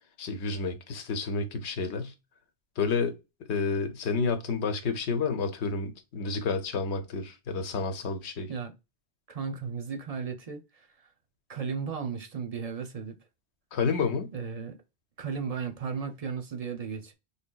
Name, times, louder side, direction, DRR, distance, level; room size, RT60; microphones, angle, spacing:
voice 1, 0.2-2.1 2.8-3.1 3.5-8.5 13.7-14.3, left 4 dB, 80° left, 1.0 m, -30 dB
voice 2, 9.3-11.1 11.5-13.2 14.3-14.8 15.2-17.1, right 6 dB, 45° right, 0.5 m, -35 dB
4.8 x 2.8 x 2.2 m
omnidirectional pair, 1.1 m